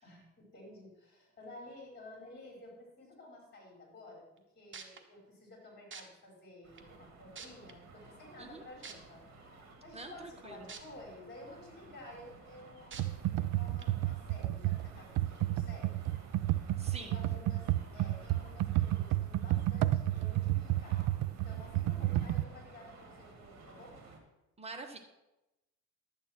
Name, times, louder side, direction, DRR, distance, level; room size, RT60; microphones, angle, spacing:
voice 1, 0.0-4.3 4.5-16.0 17.0-24.0, left 2 dB, 30° left, -1 dB, 4.7 m, -53 dB
sound 1, 4.4-4.5 4.7-5.0 5.9-6.0 6.8-6.9 7.3-7.7 8.8-8.9 10.7-10.8 11.3-11.4 12.9-13.0 13.8-13.9, right 6 dB, 40° right, 1.2 m, -45 dB
sound 2, 6.6-24.2, right 3 dB, 55° right, 2.2 m, -56 dB
voice 2, 9.9-10.7 16.8-17.2 24.6-25.0, right 3 dB, 20° right, 3 dB, 1.4 m, -46 dB
Computer keyboard, 12.9-22.4, right 14 dB, 80° right, 0.5 m, -31 dB
11.5 x 8.7 x 4.4 m, 0.98 s
cardioid pair, 110°, 32 cm